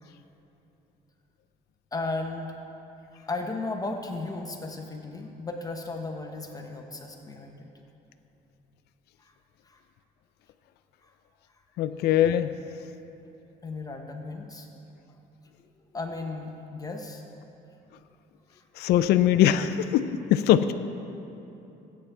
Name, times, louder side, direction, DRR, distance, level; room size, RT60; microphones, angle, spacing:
voice 1, 1.9-2.6 3.1-7.7 9.2-9.3 9.6-9.8 11.0-11.1 13.6-14.7 15.9-17.2 18.5-18.6, left 3 dB, 20° left, 2 dB, 0.9 m, -35 dB
voice 2, 11.8-12.6 18.8-20.7, left 11 dB, 75° left, 10 dB, 0.4 m, -22 dB
18.5 x 8.6 x 3.4 m, 2.9 s
cardioid pair, 110°, 17 cm